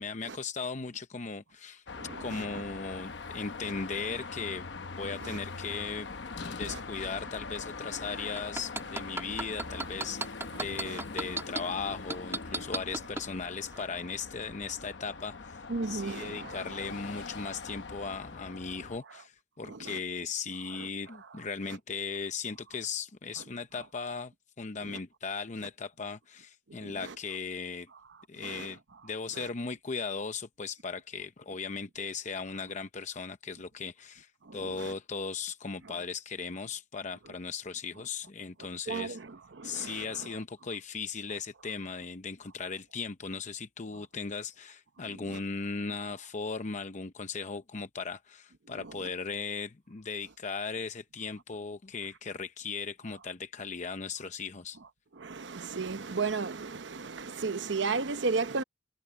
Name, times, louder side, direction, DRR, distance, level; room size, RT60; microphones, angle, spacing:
voice 1, 0.0-1.8 2.2-24.3 24.6-27.9 28.3-39.2 39.6-54.8, left 5 dB, 40° left, 0.7 m, -37 dB
Car passing by / Traffic noise roadway noise / Engine, 1.9-19.0, left 4 dB, 70° left, 0.9 m, -42 dB
voice 2, 2.0-2.6 3.6-3.7 5.2-5.4 6.6-6.8 9.7-9.9 10.5-11.0 12.5-12.7 15.7-16.9 19.1-19.2 19.6-20.0 20.7-20.9 21.2-21.4 21.7-21.8 23.4-23.5 24.8-25.0 26.7-27.2 28.4-28.8 29.3-29.5 34.4-34.9 35.8-36.0 37.2-37.3 38.9-40.4 45.1-45.4 48.7-49.1 55.1-58.6, right 4 dB, 80° right, 0.9 m, -36 dB
sound 1, 8.4-11.6 12.1-13.2 13.7-13.8, right 2 dB, 15° right, 1.5 m, -33 dB
head